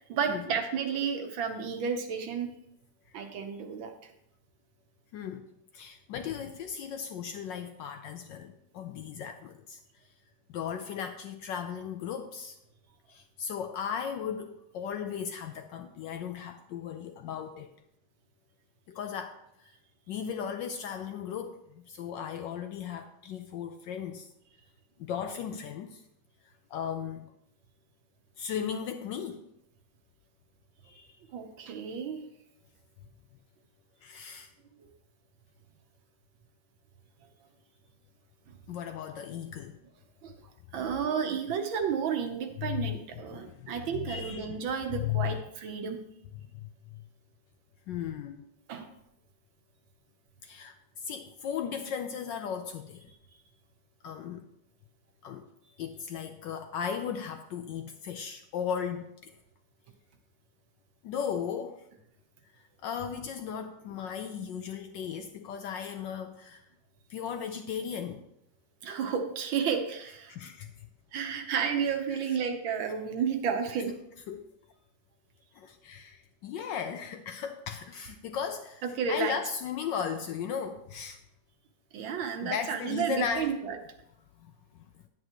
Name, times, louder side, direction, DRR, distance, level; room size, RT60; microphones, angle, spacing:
voice 1, 0.0-2.5 3.1-3.9 31.3-32.2 40.2-40.3 40.7-46.0 48.7-48.9 68.8-70.4 71.1-73.9 78.8-79.4 81.9-83.8, right 7 dB, 70° right, 6 dB, 1.6 m, -32 dB
voice 2, 5.1-5.5 5.7-9.8 10.5-12.6 13.1-17.7 18.9-19.7 20.1-24.3 25.0-26.0 26.4-27.3 28.4-29.4 30.8-31.2 34.0-34.5 38.7-39.8 42.6-43.0 43.3-44.6 44.9-45.7 46.3-47.0 47.9-48.5 50.4-53.1 54.0-54.5 55.2-55.4 55.8-59.3 61.0-61.8 62.8-66.6 67.1-68.2 70.3-70.9 71.1-71.2 72.1-72.4 74.3-74.5 75.5-78.8 79.1-81.2 82.2-83.6 84.4-84.9, left 8 dB, 75° left, 7 dB, 1.1 m, -36 dB
9.9 x 9.0 x 3.0 m, 0.78 s
omnidirectional pair, 2.4 m